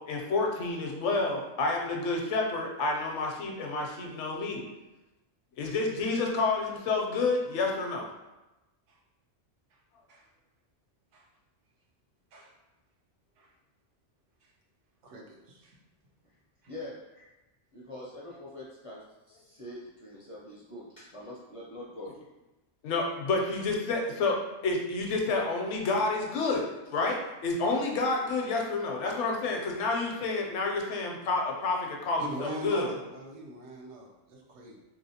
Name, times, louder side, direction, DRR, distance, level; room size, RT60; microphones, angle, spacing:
voice 1, 0.1-4.6 5.6-8.1 22.8-32.9, left 3 dB, 75° left, 1 dB, 0.9 m, -29 dB
voice 2, 15.0-15.8 16.6-16.7 32.2-34.8, right 1 dB, 85° right, -1 dB, 1.0 m, -42 dB
voice 3, 16.7-17.3 17.7-22.1, left 1 dB, 45° left, -6 dB, 0.4 m, -44 dB
2.9 x 2.7 x 2.7 m, 1.0 s
omnidirectional pair, 1.2 m